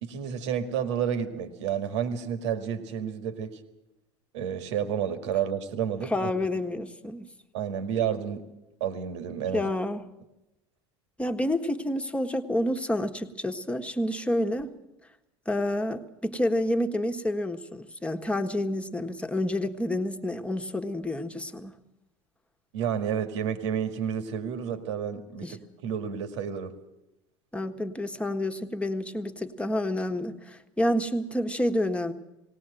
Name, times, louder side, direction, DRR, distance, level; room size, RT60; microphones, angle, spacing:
voice 1, 0.0-3.6 4.3-6.3 7.5-8.5 8.8-9.7 22.7-26.7, right 8 dB, 75° right, 8 dB, 1.9 m, -30 dB
voice 2, 6.0-7.3 9.5-10.0 11.2-14.7 15.5-21.7 25.4-25.6 27.5-32.1, left 1 dB, 10° left, 5 dB, 1.5 m, -29 dB
18.5 x 18.5 x 7.8 m, 0.93 s
hypercardioid pair, 85°, 15 cm